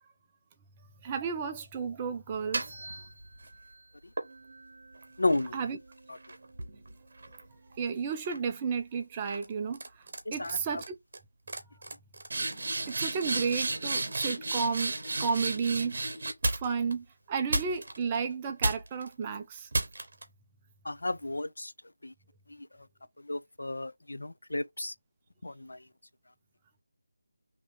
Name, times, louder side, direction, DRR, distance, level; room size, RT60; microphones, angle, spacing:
voice 1, 1.0-2.7 5.5-5.8 7.7-10.0 10.3-11.0 12.4-12.5 12.9-14.9 15.2-16.0 16.5-19.7, right 5 dB, 10° right, 0.4 m, -32 dB
sound 1, 2.3-3.6 4.2-7.7 8.1-8.5 9.2-9.5 9.7-10.2 10.4-10.9 11.1-11.2 11.5-16.9 17.5-18.2 18.6-19.1 19.7-20.2, right 2 dB, 30° right, 1.0 m, -34 dB
voice 2, 5.2-5.8 6.1-6.2 10.3-10.8 20.8-21.7 22.0-22.1 22.5-22.7 23.2-24.9 25.4-25.8, left 2 dB, 80° left, 0.6 m, -33 dB
3.7 x 3.0 x 4.6 m
figure-of-eight pair, 180°, 0 cm